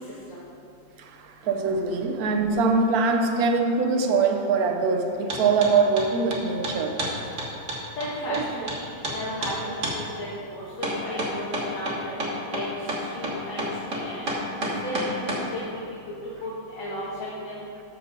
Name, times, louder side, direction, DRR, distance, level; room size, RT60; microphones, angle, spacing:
voice 1, 1.0-7.0 8.3-8.7 15.2-15.3, right 4 dB, 60° right, 5 dB, 1.0 m, -23 dB
sound 1, 5.3-5.7 6.0-8.8 9.0-9.2 9.4-9.5 9.8-10.0 10.8-15.4, right 1 dB, 40° right, 1.6 m, -29 dB
voice 2, 8.0-8.8 9.1-11.4 11.7-12.1 12.5-14.3 14.6-15.8 16.4-17.6, left 1 dB, 75° left, -7 dB, 2.2 m, -34 dB
12.5 x 4.5 x 5.2 m, 2.8 s
omnidirectional pair, 2.1 m